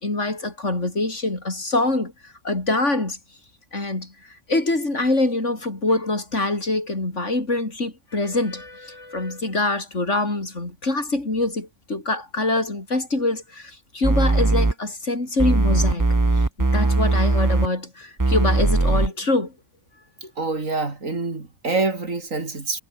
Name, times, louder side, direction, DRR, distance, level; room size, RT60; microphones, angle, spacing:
voice 1, 0.0-3.2 3.7-4.1 4.5-16.1 16.6-19.5, left 2 dB, 65° left, 5.0 m, -24 dB
sound 1, 14.0-14.7 15.4-17.7 18.2-19.1, right 2 dB, 15° right, 1.1 m, -19 dB
voice 2, 20.4-22.8, right 3 dB, 80° right, 3.9 m, -26 dB
omnidirectional pair, 1.4 m